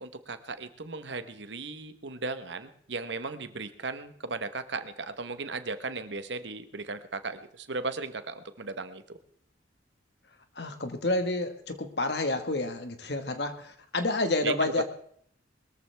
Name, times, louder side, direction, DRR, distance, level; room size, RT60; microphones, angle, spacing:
voice 1, 0.0-9.0 14.4-14.7, right 3 dB, 70° right, 10 dB, 1.2 m, -36 dB
voice 2, 10.5-14.8, left 2 dB, 60° left, 7 dB, 1.6 m, -29 dB
21.5 x 14.0 x 3.5 m, 0.63 s
head